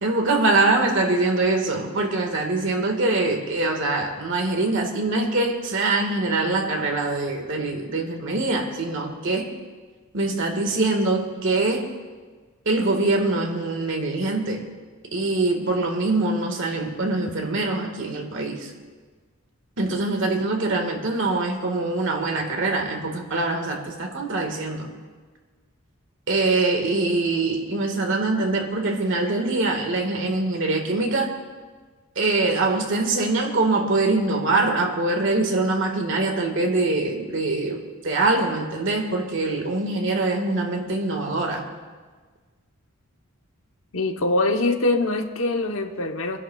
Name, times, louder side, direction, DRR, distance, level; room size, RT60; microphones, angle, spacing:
voice 1, 0.0-9.5 10.1-11.9 12.7-14.7 15.1-18.7 19.8-24.9 26.3-31.4 32.2-41.7, right 2 dB, 60° right, 2 dB, 1.7 m, -23 dB
voice 2, 43.9-46.4, left 2 dB, 70° left, 5 dB, 1.0 m, -23 dB
28.5 x 11.0 x 2.4 m, 1.4 s
head